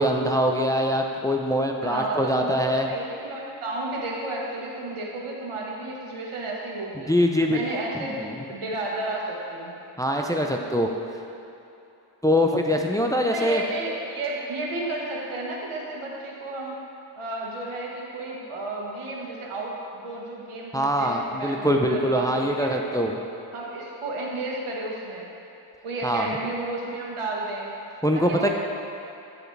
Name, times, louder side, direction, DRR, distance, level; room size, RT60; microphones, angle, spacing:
voice 1, 0.0-2.9 6.9-7.6 7.9-8.4 10.0-10.9 12.2-13.6 20.7-23.1 26.0-26.3 28.0-28.5, equal, 5° left, 2 dB, 0.6 m, -23 dB
voice 2, 1.8-7.1 7.5-9.7 13.3-16.8 17.2-23.0 23.5-25.3 25.8-27.7 28.1-28.5, right 2 dB, 75° right, -3 dB, 1.5 m, -32 dB
13.5 x 4.8 x 3.3 m, 2.8 s
cardioid pair, 55°, 50 cm